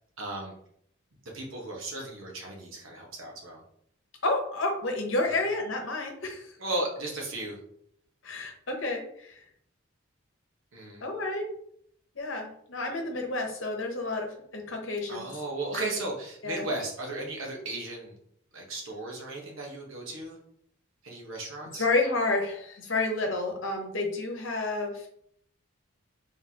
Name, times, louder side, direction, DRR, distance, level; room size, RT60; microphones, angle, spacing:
voice 1, 0.2-0.5 1.3-3.6 6.6-7.6 10.7-11.0 15.1-18.1 18.5-20.4 21.0-21.8, right 2 dB, 75° right, 0 dB, 1.2 m, -35 dB
voice 2, 4.2-6.5 8.2-9.3 11.0-11.4 12.2-15.3 15.7-15.8 16.4-16.7 21.7-25.1, left 2 dB, 65° left, 2 dB, 0.9 m, -30 dB
4.0 x 3.4 x 2.9 m, 0.67 s
head